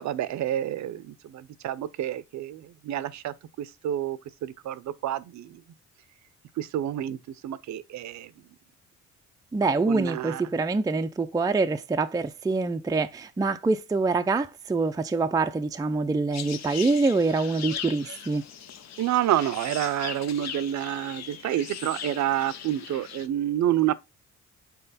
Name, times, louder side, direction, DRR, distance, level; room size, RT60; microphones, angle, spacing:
voice 1, 0.0-5.6 6.6-7.2 7.4-8.3 9.9-10.4 19.0-23.9, right 12 dB, 70° right, 0.6 m, -29 dB
voice 2, 9.5-18.4, right 3 dB, 10° right, 0.4 m, -25 dB
sound 1, 16.3-23.3, left 8 dB, 60° left, 0.8 m, -39 dB
5.7 x 4.4 x 4.1 m
cardioid pair, 90°, 30 cm